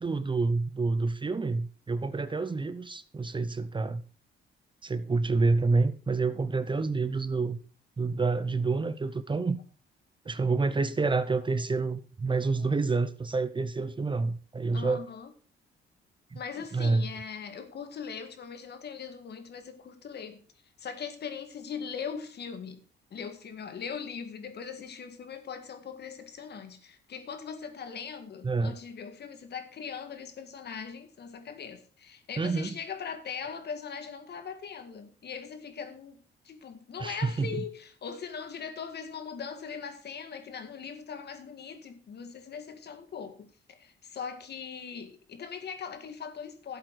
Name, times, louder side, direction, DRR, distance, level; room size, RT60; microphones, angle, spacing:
voice 1, 0.0-4.0 4.8-7.6 8.0-9.6 10.2-15.0 16.3-16.4 16.7-17.1 28.4-28.7 32.4-32.7 37.0-37.6, right 3 dB, 25° right, 0.8 m, -28 dB
voice 2, 14.7-15.3 16.3-20.4 20.8-22.8 23.1-46.8, left 6 dB, 55° left, 1.9 m, -40 dB
12.0 x 8.0 x 4.7 m
cardioid pair, 90°, 20 cm